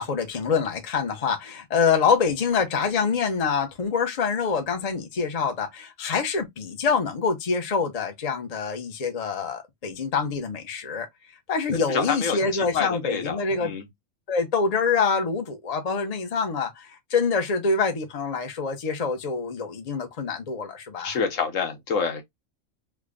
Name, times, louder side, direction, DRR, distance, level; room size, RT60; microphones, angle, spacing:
voice 1, 0.0-11.1 11.5-13.7 14.3-21.2, left 5 dB, 35° left, 0.8 m, -25 dB
voice 2, 11.9-13.9 21.0-22.2, left 6 dB, 85° left, 1.3 m, -27 dB
3.4 x 2.2 x 3.6 m
omnidirectional pair, 1.3 m